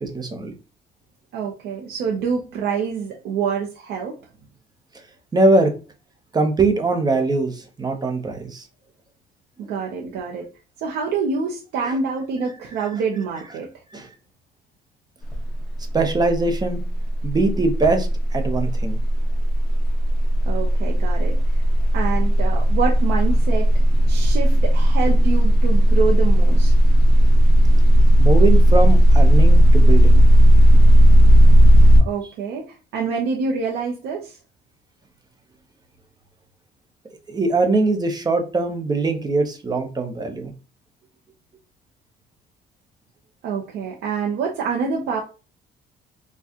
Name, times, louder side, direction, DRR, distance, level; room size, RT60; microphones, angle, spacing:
voice 1, 0.0-0.5 5.3-5.7 6.3-8.7 11.8-12.0 13.9-14.1 15.9-16.8 17.2-19.0 28.2-30.2 37.3-40.5, right 3 dB, 25° right, 5 dB, 0.9 m, -21 dB
voice 2, 1.3-4.2 9.7-10.5 10.8-13.7 20.5-21.4 21.9-23.7 24.1-26.7 32.0-34.4 43.4-45.2, right 5 dB, 80° right, 0 dB, 0.7 m, -26 dB
sound 1, 15.2-15.6 15.9-32.0, equal, 5° left, 1.2 m, -14 dB
4.5 x 2.4 x 2.9 m, 0.33 s
cardioid pair, 110°, 17 cm